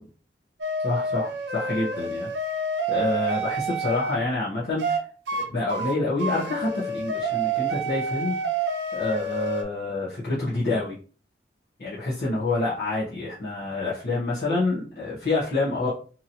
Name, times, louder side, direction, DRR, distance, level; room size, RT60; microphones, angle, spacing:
sound 1, 0.6-4.2 4.8-5.0 5.3-5.4 5.7-9.6, right 3 dB, 70° right, 0.5 m, -28 dB
voice 1, 0.8-2.3 2.9-5.0 5.5-8.4 8.9-11.0 11.8-15.9, left 2 dB, 55° left, -9 dB, 0.8 m, -27 dB
2.9 x 2.8 x 2.5 m, 0.39 s
head